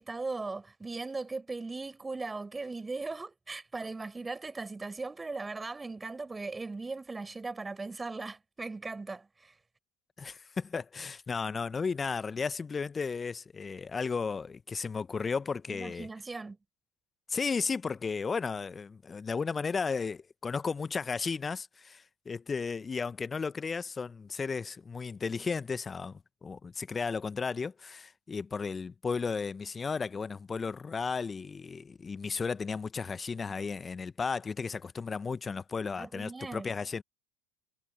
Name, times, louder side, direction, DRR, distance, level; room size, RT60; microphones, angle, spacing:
voice 1, 0.0-9.6 15.7-16.6 36.0-36.7, right 3 dB, 15° right, 5.0 m, -38 dB
voice 2, 10.2-16.1 17.3-37.0, left 5 dB, 20° left, 1.1 m, -34 dB
hypercardioid pair, 80°, 0 cm